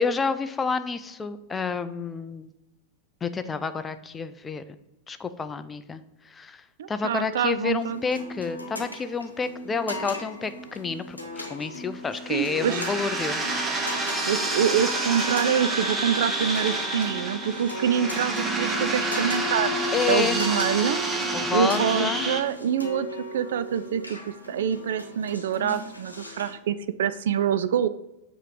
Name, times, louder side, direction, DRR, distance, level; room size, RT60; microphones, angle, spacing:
voice 1, 0.0-2.5 3.2-4.6 5.1-13.4 19.9-20.4 21.3-22.3, left 5 dB, 15° left, 11 dB, 0.4 m, -29 dB
voice 2, 6.8-8.0 12.3-12.8 14.2-21.0 21.5-23.1 23.3-27.9, right 8 dB, 60° right, 14 dB, 0.3 m, -26 dB
sound 1, 7.8-26.5, equal, 85° left, 1.0 m, -38 dB
sound 2, 12.1-22.4, right 2 dB, 15° right, 0.9 m, -28 dB
7.4 x 3.0 x 4.9 m, 0.96 s
figure-of-eight pair, 90°, 0 cm